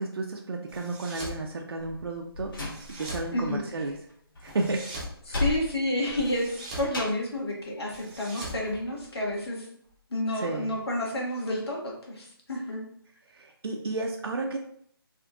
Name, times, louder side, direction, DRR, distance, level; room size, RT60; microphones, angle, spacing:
voice 1, 0.0-4.0 4.4-4.9 5.3-5.4 10.4-10.8 13.3-14.6, right 3 dB, 75° right, 1 dB, 0.5 m, -32 dB
sound 1, 0.7-1.4 2.6-3.3 4.4-5.2 6.2-6.9 7.9-9.4, right 1 dB, 20° right, 0.5 m, -41 dB
Slam, 1.8-3.6 3.9-7.4, left 2 dB, 60° left, 1.5 m, -35 dB
voice 2, 3.3-3.6 5.3-9.7 10.1-12.8, left 1 dB, 85° left, -2 dB, 1.3 m, -30 dB
3.6 x 2.5 x 2.3 m, 0.66 s
hypercardioid pair, 160°, 13 cm